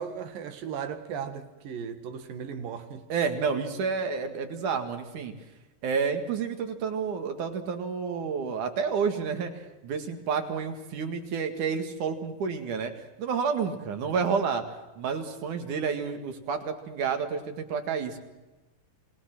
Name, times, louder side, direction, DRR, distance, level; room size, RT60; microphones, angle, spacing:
voice 1, 0.0-3.1, right 7 dB, 90° right, 3.5 m, -36 dB
voice 2, 3.1-5.3 5.8-12.9 13.2-14.6 15.0-18.2, right 6 dB, 65° right, 3.4 m, -30 dB
27.5 x 19.5 x 6.0 m
omnidirectional pair, 3.8 m